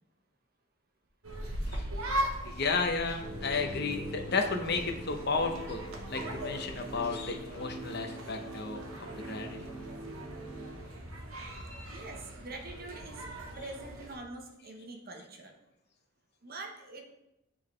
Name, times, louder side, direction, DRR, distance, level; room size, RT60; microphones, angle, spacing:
sound 1, 1.2-14.1, right 1 dB, 75° right, 1.0 m, -40 dB
voice 1, 2.4-8.8 9.3-9.8, left 4 dB, 50° left, 4 dB, 0.7 m, -33 dB
sound 2, 3.2-10.8, right 1 dB, 10° right, 1.1 m, -43 dB
voice 2, 11.9-13.3 13.6-15.5 16.4-17.1, right 2 dB, 45° right, 2 dB, 0.9 m, -44 dB
9.7 x 3.8 x 3.2 m, 0.88 s
head